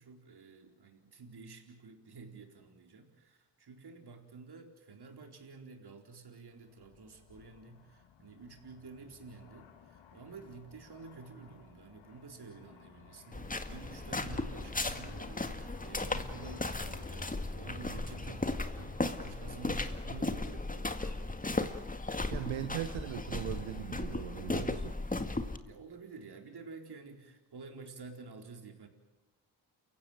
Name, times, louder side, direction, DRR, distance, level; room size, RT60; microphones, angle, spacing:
voice 1, 0.0-21.0 25.6-28.9, right 4 dB, 50° right, 4 dB, 4.3 m, -50 dB
Aircraft, 6.6-23.8, left 6 dB, 60° left, 2.4 m, -57 dB
sound 1, 13.3-25.6, left 2 dB, 15° left, 2.0 m, -36 dB
voice 2, 22.3-25.0, right 13 dB, 70° right, 12 dB, 1.1 m, -39 dB
29.0 x 16.0 x 9.0 m, 1.0 s
hypercardioid pair, 45°, 49 cm